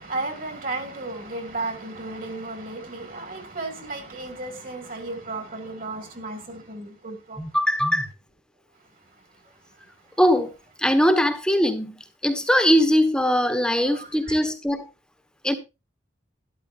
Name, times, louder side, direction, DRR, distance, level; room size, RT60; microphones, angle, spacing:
voice 1, 0.1-2.8 3.6-6.4, right 2 dB, 45° right, 2.6 m, -33 dB
voice 2, 7.4-8.1 10.2-10.5 10.8-14.9 15.4-15.6, equal, 5° left, 1.2 m, -21 dB
12.5 x 12.0 x 2.7 m
head